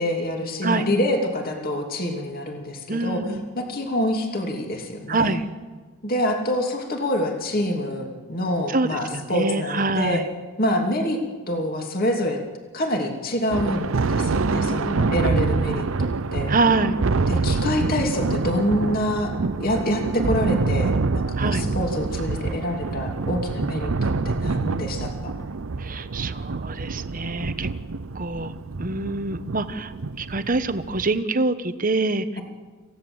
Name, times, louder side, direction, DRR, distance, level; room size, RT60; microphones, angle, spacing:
voice 1, 0.0-3.2 3.5-5.4 6.0-10.2 10.6-11.2 11.5-12.4 12.7-16.5 17.3-19.3 19.6-25.3, left 1 dB, 40° left, 2 dB, 2.9 m, -26 dB
voice 2, 2.9-3.4 5.1-5.4 8.7-10.3 14.3-15.1 16.5-17.0 21.4-21.6 25.8-27.7 28.1-28.5 28.8-29.9 30.2-32.3, right 3 dB, 40° right, 10 dB, 1.1 m, -25 dB
Thunder, 13.5-31.2, right 3 dB, 70° right, 0.6 m, -26 dB
28.0 x 16.5 x 8.0 m, 1.4 s
head